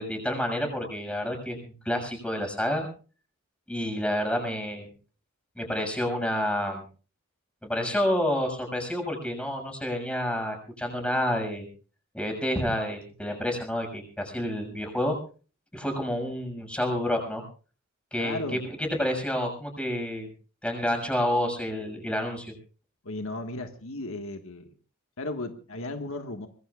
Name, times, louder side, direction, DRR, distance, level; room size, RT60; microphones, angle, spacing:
voice 1, 0.0-1.6 1.8-2.9 3.7-4.9 5.6-6.8 7.6-11.7 12.1-15.2 15.7-17.4 18.1-18.4 19.0-20.3 20.6-22.5, left 1 dB, 5° left, 4 dB, 6.7 m, -29 dB
voice 2, 18.2-18.6 23.0-24.7 25.2-26.5, left 2 dB, 70° left, 5 dB, 1.7 m, -35 dB
25.0 x 21.5 x 2.5 m, 0.38 s
head